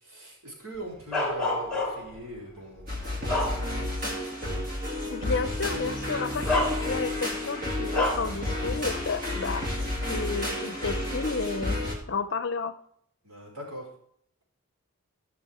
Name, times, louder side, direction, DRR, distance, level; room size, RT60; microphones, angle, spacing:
voice 1, 0.0-3.9 13.2-13.9, right 1 dB, 80° right, -3 dB, 3.7 m, -41 dB
Bark, 1.1-2.2 2.8-4.0 4.5-4.6 5.8-5.9 6.5-7.2 7.9-8.4, left 2 dB, 5° left, 2.2 m, -29 dB
sound 1, 2.9-12.0, left 1 dB, 40° right, 2.6 m, -31 dB
voice 2, 5.1-11.8 12.1-12.7, left 4 dB, 55° left, 12 dB, 0.6 m, -32 dB
15.5 x 6.2 x 3.6 m, 0.66 s
head